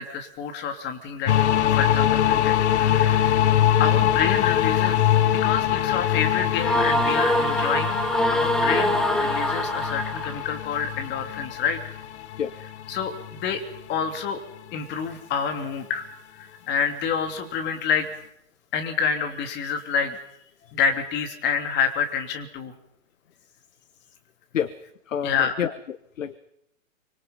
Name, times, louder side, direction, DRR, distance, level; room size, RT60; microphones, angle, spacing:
voice 1, 0.0-1.3 1.7-3.5 3.8-8.0 8.3-11.8 12.9-13.6 13.9-14.4 14.7-16.1 16.4-18.1 18.7-20.2 20.7-22.7 25.2-25.5, left 6 dB, 25° left, 5 dB, 3.3 m, -28 dB
sound 1, 1.3-13.8, left 11 dB, 60° left, 1.6 m, -23 dB
sound 2, 6.6-10.4, equal, ahead, 1.2 m, -24 dB
voice 2, 25.1-26.4, left 8 dB, 75° left, 14 dB, 1.4 m, -29 dB
25.5 x 24.5 x 5.7 m, 0.74 s
hypercardioid pair, 125°, 39 cm